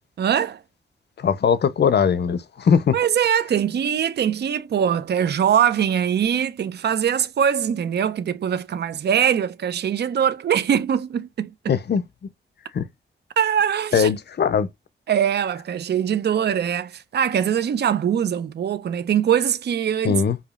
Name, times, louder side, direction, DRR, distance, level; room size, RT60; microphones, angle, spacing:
voice 1, 0.2-0.6 2.9-11.7 13.4-14.1 15.1-20.2, right 8 dB, 60° right, 0.5 m, -22 dB
voice 2, 1.2-3.0 11.7-12.0 12.7-12.9 13.9-14.7 20.0-20.4, left 7 dB, 60° left, 0.5 m, -20 dB
4.9 x 2.8 x 2.3 m
wide cardioid pair, 120°, 19 cm